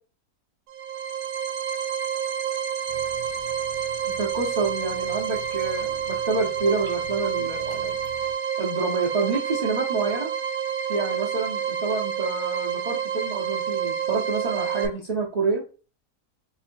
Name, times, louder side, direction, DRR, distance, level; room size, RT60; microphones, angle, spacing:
sound 1, 0.7-14.9, right 8 dB, 75° right, 1.0 m, -28 dB
sound 2, 2.9-8.3, left 3 dB, 60° left, 0.9 m, -46 dB
voice 1, 4.2-8.0 8.6-10.3 10.9-15.6, right 4 dB, 90° right, -3 dB, 0.3 m, -28 dB
3.0 x 2.5 x 4.3 m, 0.36 s
omnidirectional pair, 1.7 m